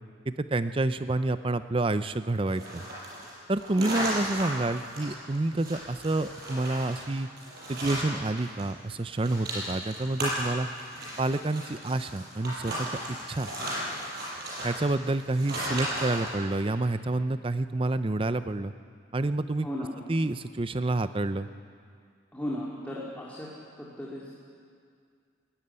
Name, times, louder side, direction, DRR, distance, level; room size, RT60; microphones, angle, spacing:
voice 1, 0.3-2.8 3.5-7.3 7.7-10.7 11.2-13.5 14.6-18.7 19.1-19.7 20.1-21.5, right 2 dB, 25° right, 12 dB, 0.5 m, -28 dB
sound 1, 2.5-8.6 8.9-16.3, right 1 dB, 50° right, 7.0 m, -35 dB
voice 2, 19.6-19.9 22.3-23.5 23.8-24.3, equal, 5° left, -6 dB, 2.2 m, -36 dB
19.5 x 14.5 x 9.7 m, 2.2 s
head